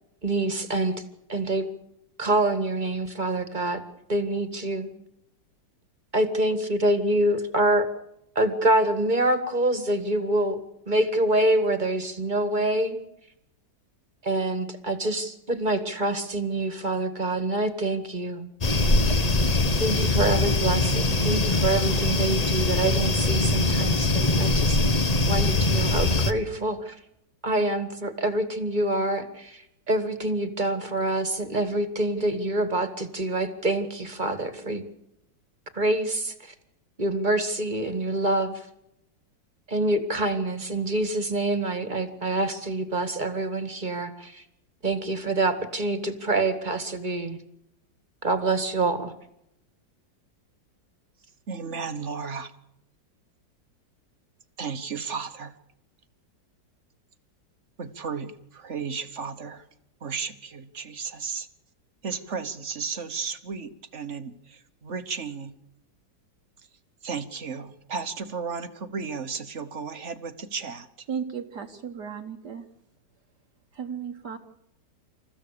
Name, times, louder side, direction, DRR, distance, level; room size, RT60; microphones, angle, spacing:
voice 1, 0.2-1.0 1.3-1.7 2.2-3.8 4.1-4.9 6.1-7.9 8.4-10.6 10.9-13.0 14.2-18.5 19.8-24.8 25.3-27.0 27.4-34.8 35.7-36.5 37.0-38.7 39.7-44.4 44.8-47.4 48.2-49.1, right 1 dB, 25° right, 10 dB, 1.9 m, -26 dB
sound 1, 18.6-26.3, left 2 dB, 25° left, 1.0 m, -22 dB
voice 2, 51.5-52.5 54.6-55.5 57.8-59.7 60.0-61.5 62.0-65.6 67.0-71.1, right 5 dB, 40° right, 10 dB, 1.5 m, -34 dB
voice 3, 71.1-72.7 73.7-74.4, right 7 dB, 65° right, 4 dB, 1.8 m, -35 dB
28.0 x 15.0 x 6.8 m, 0.81 s
omnidirectional pair, 2.0 m